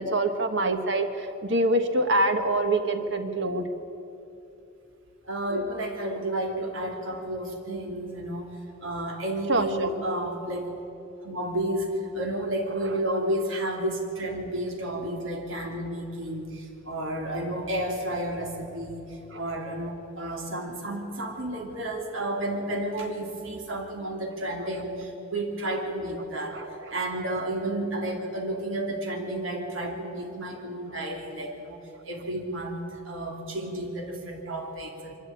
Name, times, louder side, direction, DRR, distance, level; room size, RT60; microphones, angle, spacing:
voice 1, 0.0-3.7 9.5-9.9 19.3-19.4 26.5-26.9, right 2 dB, 60° right, 7 dB, 1.5 m, -25 dB
voice 2, 5.2-10.7 11.2-26.6 26.9-35.1, right 1 dB, 80° right, 1 dB, 2.9 m, -31 dB
24.0 x 13.0 x 8.6 m, 2.8 s
head